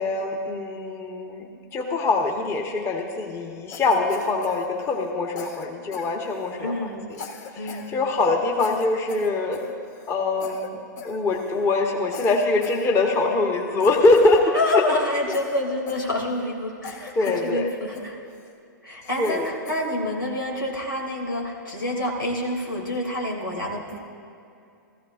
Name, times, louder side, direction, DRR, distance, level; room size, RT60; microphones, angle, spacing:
voice 1, 0.0-6.7 7.5-9.6 10.1-14.8 17.2-17.7 19.2-19.5, left 2 dB, 25° left, 1 dB, 1.2 m, -23 dB
Cough, 3.7-5.1 5.4-6.6 7.1-7.9 8.2-8.3 8.6-10.1 10.4-10.7 11.0-11.6 12.1-13.3 13.8-14.9 15.3-16.5 16.8-17.5 17.9-18.5 19.0-19.9, left 5 dB, 55° left, 1.3 m, -40 dB
voice 2, 6.6-7.1 7.6-7.9 14.5-18.2 18.8-24.0, left 1 dB, 90° left, -1 dB, 2.5 m, -28 dB
16.0 x 15.0 x 2.5 m, 2.6 s
hypercardioid pair, 115°, 11 cm